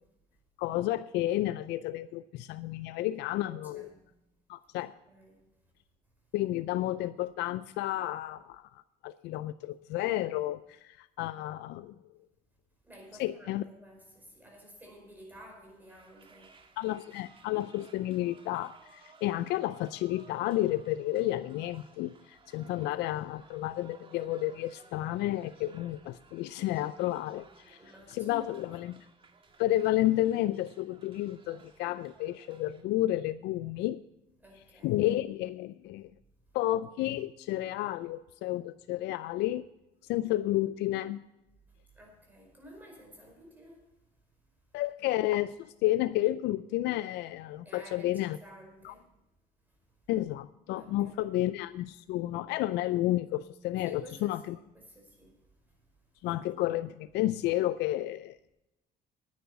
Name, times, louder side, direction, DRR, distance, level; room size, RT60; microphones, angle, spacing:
voice 1, 0.6-3.9 4.5-4.9 6.3-12.0 13.2-13.6 16.8-27.8 28.1-29.0 29.6-34.0 34.8-36.1 36.5-39.6 40.1-41.2 44.7-48.4 48.8-48.9 50.1-54.6 56.2-58.4, left 15 dB, 85° left, 0.5 m, -31 dB
voice 2, 3.4-4.1 4.7-5.4 12.8-16.8 22.7-23.2 27.8-28.5 34.4-35.0 41.9-43.9 47.6-49.1 49.7-49.8 50.8-51.3 53.8-56.1, equal, 10° right, 5.0 m, -53 dB
sound 1, 15.8-32.8, right 4 dB, 30° right, 1.6 m, -59 dB
10.5 x 9.5 x 6.7 m
cardioid pair, 110°, 17 cm